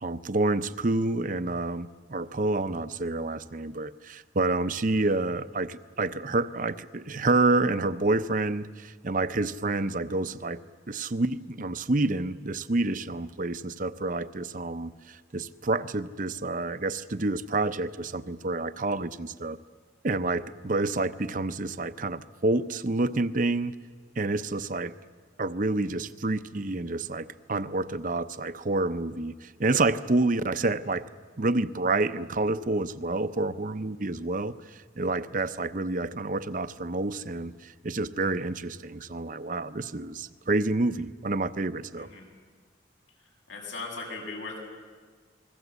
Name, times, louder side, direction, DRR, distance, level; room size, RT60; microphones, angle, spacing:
voice 1, 0.0-10.6 10.9-19.6 20.0-23.8 24.2-24.9 25.4-31.1 31.4-42.1, right 2 dB, 45° right, 13 dB, 0.7 m, -28 dB
voice 2, 43.5-44.6, left 3 dB, 90° left, 1 dB, 7.1 m, -38 dB
28.0 x 21.5 x 8.1 m, 1.5 s
head